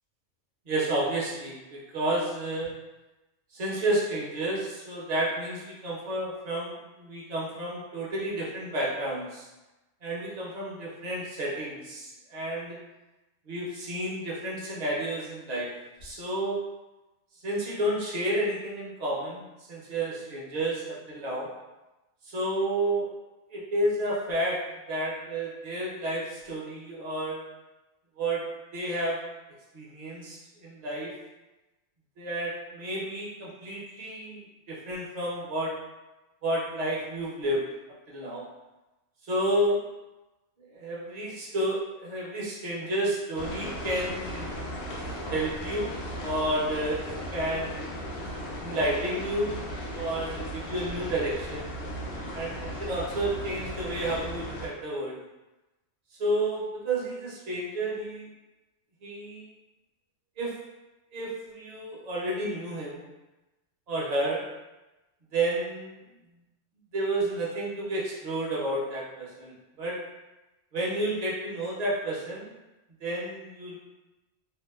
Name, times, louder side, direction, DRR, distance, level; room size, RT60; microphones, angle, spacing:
voice 1, 0.7-2.7 3.5-9.5 10.0-12.8 13.5-15.7 16.0-16.6 17.4-21.5 22.2-23.1 23.5-24.6 24.9-27.4 28.2-28.4 28.7-29.2 29.7-31.1 32.2-34.4 34.7-35.7 36.4-37.6 38.1-38.4 39.2-39.8 40.7-44.5 45.3-45.9 46.2-48.0 48.6-49.6 49.9-51.7 52.3-55.2 56.2-58.3 59.0-59.5 60.4-60.6 61.1-63.0 63.9-64.4 65.3-65.9 66.9-70.0 70.7-72.5 73.0-73.8, right 1 dB, 45° right, -6 dB, 0.5 m, -31 dB
sound 1, 43.4-54.7, equal, 85° left, 1.0 m, -36 dB
2.8 x 2.2 x 2.2 m, 1.1 s
omnidirectional pair, 1.3 m